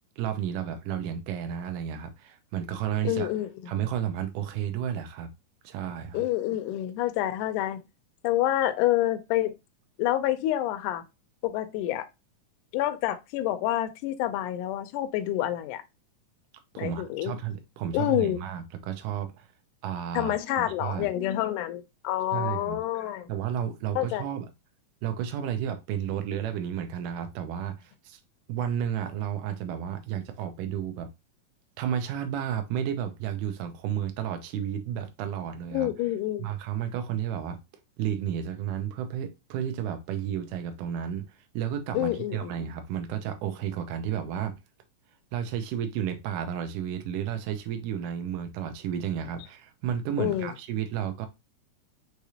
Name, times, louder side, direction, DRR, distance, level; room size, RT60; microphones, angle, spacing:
voice 1, 0.2-3.3 3.7-5.3 5.6-6.2 16.7-19.5 19.8-21.1 22.3-22.8 23.3-24.5 25.0-28.2 28.5-31.1 31.8-35.9 36.4-37.6 38.0-44.6 45.3-51.3, right 9 dB, 75° right, 2.2 m, -32 dB
voice 2, 3.0-3.5 6.1-7.8 8.2-9.5 10.0-11.0 11.4-12.1 12.7-15.8 16.8-17.4 17.9-18.4 20.1-23.3 24.0-24.3 35.7-36.5 41.9-42.5 50.2-50.5, left 13 dB, 75° left, 2.0 m, -28 dB
6.0 x 3.3 x 2.7 m
omnidirectional pair, 4.0 m